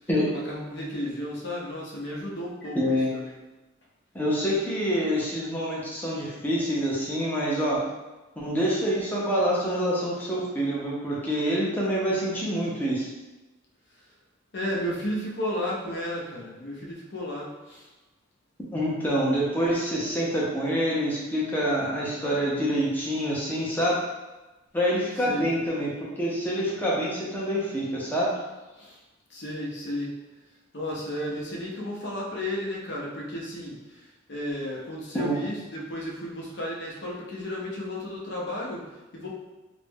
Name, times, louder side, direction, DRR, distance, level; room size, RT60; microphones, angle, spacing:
voice 1, 0.3-3.4 14.5-17.8 25.2-25.5 28.8-29.0 29.3-30.2 30.7-33.8 34.3-39.3, left 1 dB, 55° left, -4 dB, 0.6 m, -33 dB
voice 2, 2.7-3.1 4.1-7.8 8.4-13.1 18.7-24.0 24.7-28.3 35.1-35.4, equal, 10° left, -6 dB, 0.5 m, -26 dB
2.5 x 2.1 x 3.4 m, 1.1 s
head